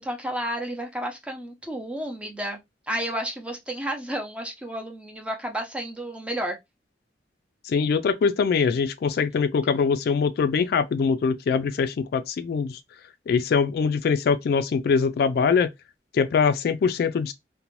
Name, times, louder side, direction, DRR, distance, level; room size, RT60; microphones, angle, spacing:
voice 1, 0.0-2.6 2.9-6.6, right 1 dB, 5° right, 0.5 m, -31 dB
voice 2, 7.6-12.8 13.3-15.7 16.1-17.3, left 5 dB, 60° left, 0.3 m, -23 dB
2.6 x 2.1 x 3.0 m
head